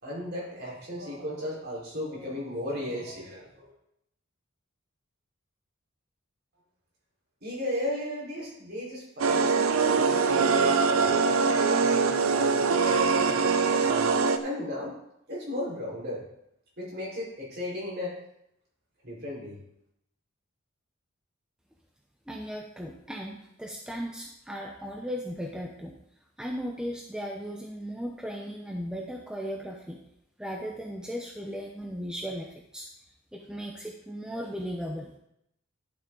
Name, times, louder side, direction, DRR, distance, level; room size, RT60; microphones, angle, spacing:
voice 1, 0.0-3.5 7.4-11.5 11.8-14.1 14.4-14.9 15.3-16.2 16.8-18.1 19.0-19.5, left 1 dB, 50° right, -6 dB, 4.7 m, -35 dB
sound 1, 9.2-14.4, right 5 dB, 85° right, 0.7 m, -23 dB
voice 2, 22.3-25.9 26.4-30.0 30.4-32.5 32.7-32.9 33.3-35.1, equal, 5° right, 0 dB, 0.8 m, -36 dB
12.0 x 7.6 x 4.0 m, 0.79 s
head